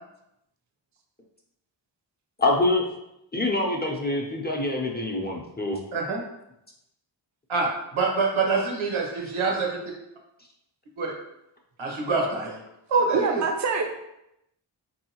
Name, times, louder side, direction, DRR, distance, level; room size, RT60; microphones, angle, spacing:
voice 1, 2.4-2.9 3.3-5.8, left 2 dB, 20° left, -1 dB, 0.5 m, -25 dB
voice 2, 7.9-9.8 11.0-11.1 11.8-12.6 12.9-13.4, right 4 dB, 85° right, 0 dB, 0.9 m, -25 dB
voice 3, 13.1-13.9, right 4 dB, 40° right, 4 dB, 0.5 m, -25 dB
3.8 x 2.7 x 2.8 m, 0.84 s
wide cardioid pair, 80°, 47 cm